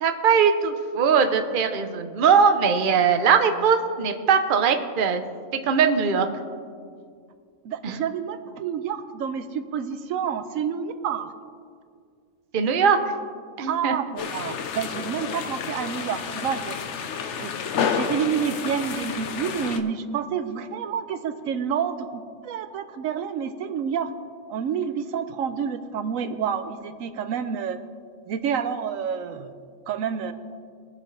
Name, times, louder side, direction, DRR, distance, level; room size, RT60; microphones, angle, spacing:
voice 1, 0.0-5.2 5.6-6.3 7.8-8.0 12.5-13.0 13.6-14.0, right 6 dB, 45° right, 7 dB, 0.8 m, -20 dB
voice 2, 7.6-11.3 13.7-16.8 17.4-17.5 17.9-24.1 24.5-27.8 28.3-29.5 29.9-30.3, right 7 dB, 85° right, 10 dB, 1.0 m, -29 dB
sound 1, 14.2-19.8, left 6 dB, 65° left, 1.0 m, -30 dB
21.5 x 7.4 x 3.3 m, 2.2 s
omnidirectional pair, 1.4 m